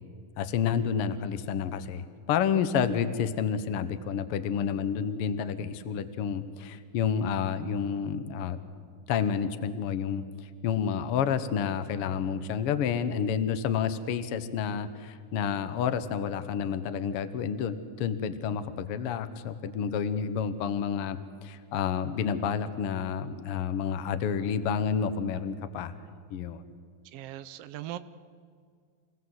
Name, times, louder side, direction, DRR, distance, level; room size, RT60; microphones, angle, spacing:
voice 1, 0.4-8.6 9.1-25.9 26.3-26.6, left 7 dB, 65° left, 11 dB, 1.6 m, -30 dB
voice 2, 27.1-28.0, right 13 dB, 80° right, 12 dB, 1.4 m, -39 dB
27.5 x 16.5 x 7.9 m, 2.1 s
omnidirectional pair, 3.5 m